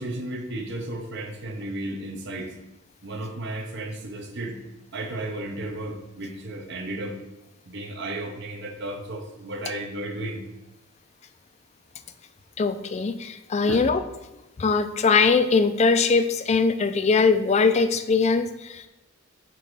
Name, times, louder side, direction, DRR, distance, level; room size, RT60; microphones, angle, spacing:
voice 1, 0.0-2.5 3.0-4.6 4.9-7.2 7.7-10.4 13.7-13.8, right 1 dB, 55° right, 5 dB, 0.7 m, -33 dB
voice 2, 12.6-14.0 14.6-18.9, left 4 dB, 30° left, 10 dB, 0.3 m, -21 dB
5.8 x 3.8 x 4.7 m, 0.99 s
head